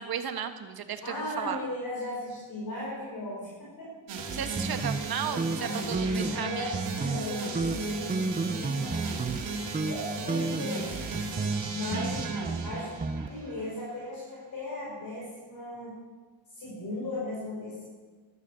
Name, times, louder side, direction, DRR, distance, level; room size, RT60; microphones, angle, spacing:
voice 1, 0.0-1.6 4.3-6.7, right 8 dB, 50° right, 8 dB, 1.5 m, -34 dB
voice 2, 1.0-3.9 5.6-9.4 9.9-11.0 11.7-12.3 12.6-12.9 13.3-15.9 16.5-17.8, left 1 dB, 45° left, -5 dB, 5.6 m, -37 dB
sound 1, 4.1-13.7, right 3 dB, 65° right, 3.0 m, -36 dB
sound 2, 4.6-6.4 6.7-7.3 7.6-9.4 9.7-10.0 10.3-13.3, right 3 dB, 20° right, 0.8 m, -32 dB
13.5 x 12.5 x 7.0 m, 1.4 s
cardioid pair, 110°, 47 cm